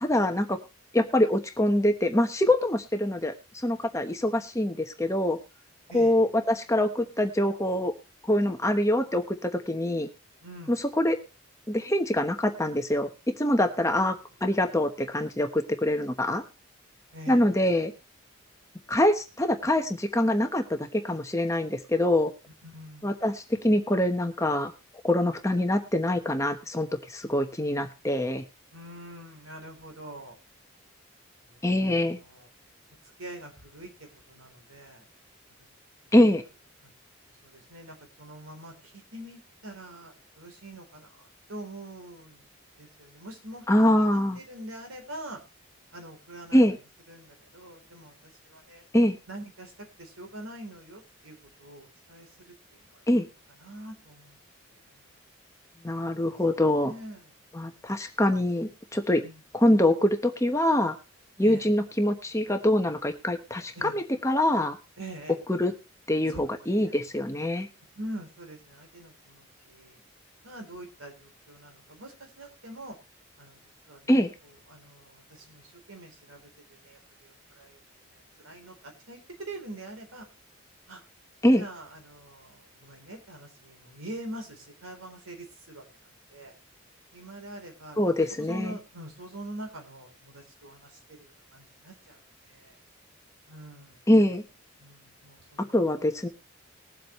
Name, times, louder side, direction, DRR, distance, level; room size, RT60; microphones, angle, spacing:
voice 1, 0.0-0.6 0.9-5.4 5.9-7.9 8.3-10.1 10.7-11.2 11.7-16.4 17.3-17.9 18.9-22.3 23.0-24.7 25.0-28.4 31.6-32.2 36.1-36.4 43.7-44.4 46.5-46.8 48.9-49.2 53.1-53.3 55.8-56.9 57.5-59.2 59.5-61.0 61.4-64.8 65.5-65.7 66.1-67.7 74.1-74.3 81.4-81.6 88.0-88.8 94.1-94.4 95.7-96.3, left 1 dB, 15° left, 6 dB, 1.0 m, -24 dB
voice 2, 5.9-6.3 10.4-10.8 13.7-13.8 17.1-17.6 22.5-23.2 28.7-30.4 31.4-31.9 32.2-32.5 33.2-33.9 34.3-35.0 36.8-36.9 37.4-41.2 41.5-42.4 42.8-45.4 45.9-46.7 47.1-48.8 49.3-49.7 50.0-53.0 53.6-54.4 54.7-55.0 55.9-56.3 56.8-57.3 59.1-59.4 61.4-61.7 63.7-64.0 65.0-65.4 66.3-66.5 66.8-66.9 67.9-70.0 70.4-73.0 73.4-74.3 74.7-77.8 78.1-80.3 80.9-81.0 81.6-85.8 86.3-86.5 87.1-88.0 88.4-92.8 93.5-94.0 94.8-95.8, right 1 dB, 80° right, 4 dB, 3.7 m, -44 dB
20.5 x 7.7 x 3.1 m, 0.28 s
head